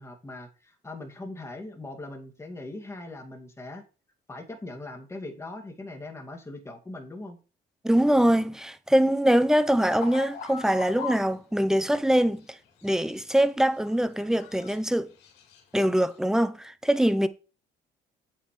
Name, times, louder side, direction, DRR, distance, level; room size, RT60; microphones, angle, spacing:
voice 1, 0.0-3.8 4.3-7.4, left 2 dB, 15° left, 2.2 m, -40 dB
voice 2, 7.8-12.6 12.8-15.1 15.7-17.3, right 1 dB, 5° right, 0.7 m, -23 dB
sound 1, 10.0-11.3 12.6-13.4 13.7-14.8 15.1-15.6 16.0-16.2, left 6 dB, 75° left, 2.6 m, -40 dB
8.3 x 8.1 x 3.2 m
cardioid pair, 110°, 17 cm